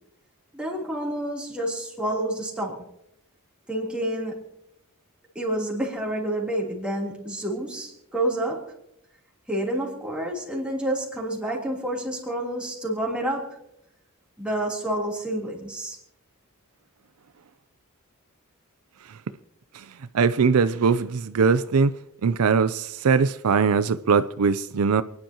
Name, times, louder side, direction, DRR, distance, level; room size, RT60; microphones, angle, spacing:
voice 1, 0.5-2.9 3.7-4.5 5.3-8.7 9.5-13.6 14.4-16.0, right 1 dB, 5° right, 3.3 m, -29 dB
voice 2, 20.1-21.9 22.2-25.0, right 5 dB, 80° right, 0.5 m, -21 dB
29.0 x 10.5 x 2.9 m
head